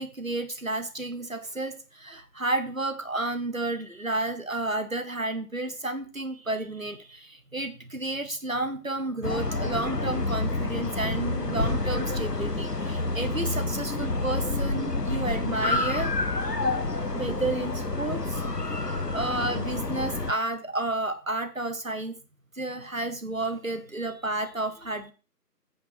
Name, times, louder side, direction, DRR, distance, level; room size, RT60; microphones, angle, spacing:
voice 1, 0.0-16.1 16.4-16.7 17.1-18.4 18.7-22.2 22.5-25.1, right 2 dB, 55° right, 10 dB, 1.2 m, -31 dB
sound 1, 9.2-20.3, left 2 dB, 70° left, 1.3 m, -28 dB
8.9 x 5.1 x 6.0 m, 0.35 s
figure-of-eight pair, 175°, 49 cm